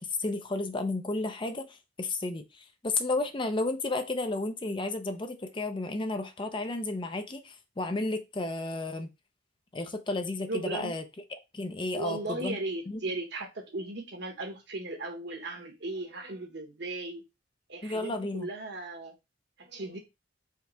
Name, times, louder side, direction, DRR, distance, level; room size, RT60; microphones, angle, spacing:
voice 1, 0.2-9.1 9.7-11.0 11.5-12.6 12.9-13.0 17.8-18.5, left 2 dB, 25° left, 0.6 m, -32 dB
voice 2, 10.5-11.0 11.9-17.2 17.7-19.1 19.6-20.0, right 2 dB, 65° right, 1.3 m, -37 dB
4.6 x 3.4 x 3.3 m
head